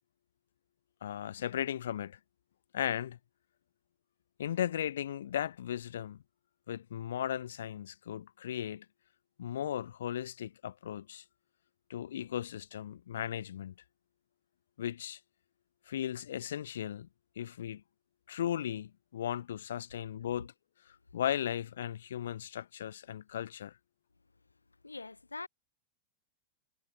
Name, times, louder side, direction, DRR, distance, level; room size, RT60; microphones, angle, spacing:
voice 1, 1.0-2.2 2.7-3.2 4.4-6.2 6.7-8.8 9.4-11.2 11.9-13.7 14.8-15.2 15.9-17.1 17.4-17.8 18.3-20.5 21.1-23.7, left 10 dB, 60° left, 1.4 m, -36 dB
voice 2, 20.0-20.4 24.8-25.5, left 3 dB, 80° left, 2.9 m, -45 dB
figure-of-eight pair, 90°, 0 cm